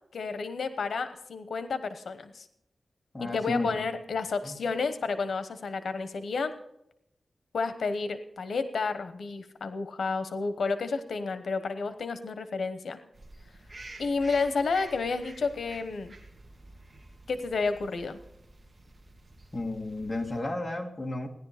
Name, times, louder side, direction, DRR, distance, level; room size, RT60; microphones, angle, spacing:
voice 1, 0.1-2.5 3.2-6.5 7.5-13.0 14.0-16.1 17.3-18.2, left 4 dB, 90° left, 10 dB, 1.0 m, -31 dB
voice 2, 3.1-3.7 4.4-4.6 19.5-21.3, left 2 dB, 20° left, 2 dB, 1.9 m, -32 dB
sound 1, 13.1-20.4, right 2 dB, 40° right, 2.0 m, -50 dB
17.0 x 10.5 x 5.0 m, 0.82 s
wide cardioid pair, 140°, 0 cm